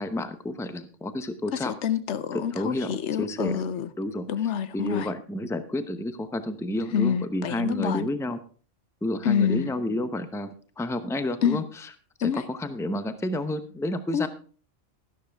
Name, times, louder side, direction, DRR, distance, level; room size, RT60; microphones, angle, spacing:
voice 1, 0.0-1.7 2.3-3.6 4.0-4.3 4.7-8.4 9.0-11.9 12.3-14.3, left 1 dB, 5° left, 0.7 m, -30 dB
voice 2, 1.5-3.9 4.3-5.1 6.9-8.1 9.2-9.7 11.4-11.6 12.2-12.4 14.1-14.3, left 8 dB, 75° left, 1.0 m, -27 dB
12.5 x 12.0 x 3.5 m
omnidirectional pair, 1.2 m